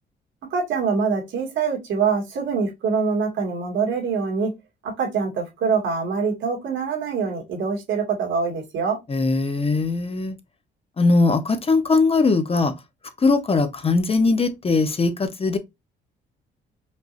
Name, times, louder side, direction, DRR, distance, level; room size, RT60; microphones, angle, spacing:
voice 1, 0.5-4.5 4.8-9.0, right 5 dB, 80° right, 2.2 m, -24 dB
voice 2, 9.1-10.4 11.0-12.7 13.2-15.6, left 3 dB, 30° left, 0.9 m, -20 dB
5.2 x 2.8 x 2.6 m
cardioid pair, 90°, 20 cm